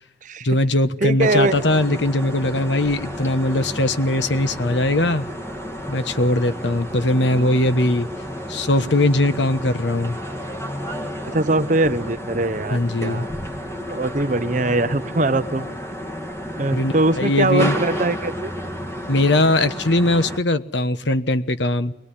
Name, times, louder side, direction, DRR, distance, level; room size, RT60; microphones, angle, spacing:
voice 1, 0.4-5.3 5.9-8.1 8.5-10.2 12.7-13.3 16.7-17.8 19.1-21.9, left 1 dB, 90° left, 1.2 m, -20 dB
voice 2, 1.0-1.5 11.3-13.3 13.9-15.7 16.6-18.5, right 2 dB, 45° right, 1.0 m, -21 dB
sound 1, 1.2-20.4, equal, 15° left, 2.2 m, -31 dB
23.5 x 20.0 x 10.0 m
head